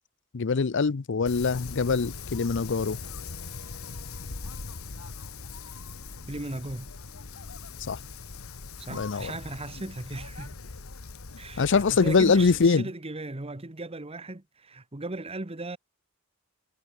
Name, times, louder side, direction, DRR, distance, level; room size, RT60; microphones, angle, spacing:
voice 1, 0.3-3.0 7.8-8.0 8.9-9.3 11.6-12.9, left 4 dB, 60° left, 0.6 m, -23 dB
Wind, 1.3-12.7, left 4 dB, 80° left, 1.5 m, -41 dB
sound 1, 3.0-11.7, left 1 dB, 40° left, 5.5 m, -58 dB
voice 2, 6.3-6.9 8.8-10.6 11.4-15.8, right 2 dB, 30° right, 1.3 m, -37 dB
head